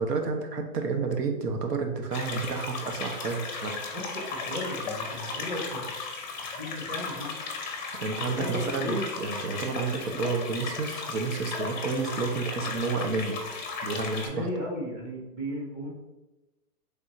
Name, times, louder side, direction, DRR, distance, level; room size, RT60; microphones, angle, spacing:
voice 1, 0.0-3.8 8.0-13.4 13.8-14.5, right 4 dB, 90° right, 5 dB, 0.9 m, -30 dB
sound 1, 2.1-14.3, left 4 dB, 30° left, 0.5 m, -36 dB
voice 2, 3.9-5.9 6.3-7.5 8.3-9.0 14.2-15.9, equal, 15° right, -3 dB, 0.8 m, -35 dB
3.5 x 2.5 x 4.1 m, 1.0 s
hypercardioid pair, 155°, 46 cm